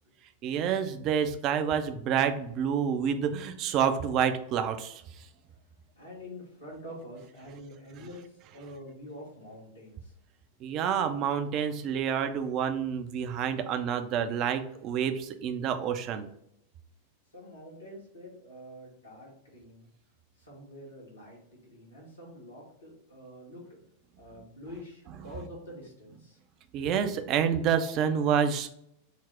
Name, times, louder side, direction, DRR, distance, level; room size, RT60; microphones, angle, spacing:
voice 1, 0.4-5.2 10.6-16.3 26.7-28.7, right 8 dB, 35° right, 9 dB, 0.4 m, -28 dB
voice 2, 5.9-10.1 17.3-19.9 20.4-23.8 24.2-26.4, left 1 dB, 75° left, -3 dB, 1.3 m, -46 dB
4.1 x 2.0 x 4.5 m, 0.76 s
figure-of-eight pair, 90°, 0 cm